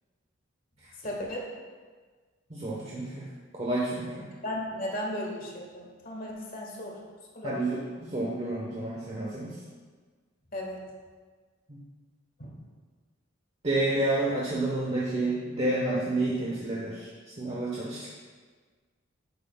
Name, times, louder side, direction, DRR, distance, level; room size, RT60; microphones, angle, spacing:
voice 1, 1.0-1.5 4.4-7.0 7.3-7.6 10.5-10.8 12.4-12.5, left 1 dB, 45° left, -2 dB, 1.6 m, -35 dB
voice 2, 2.5-3.3 3.5-4.3 7.4-9.6 11.7-11.8 13.6-17.1 17.4-18.1, right 2 dB, 30° right, -5 dB, 1.0 m, -30 dB
11.0 x 7.4 x 2.3 m, 1.5 s
head